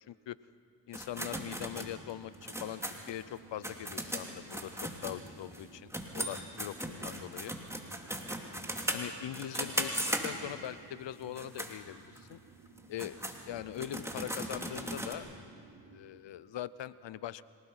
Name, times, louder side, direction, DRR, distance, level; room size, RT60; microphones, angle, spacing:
voice 1, 0.9-2.8 3.1-7.5 8.9-12.4 12.9-13.2 13.5-15.3 15.9-17.4, left 12 dB, 70° left, 18 dB, 0.7 m, -41 dB
sound 1, 0.9-5.6 5.9-10.7 11.2-11.7 12.2-12.3 12.8-15.1, right 1 dB, 5° right, 2.7 m, -38 dB
sound 2, 1.2-16.0, right 4 dB, 90° right, 3.2 m, -58 dB
25.5 x 18.0 x 5.6 m, 2.3 s
supercardioid pair, 40°, 45 cm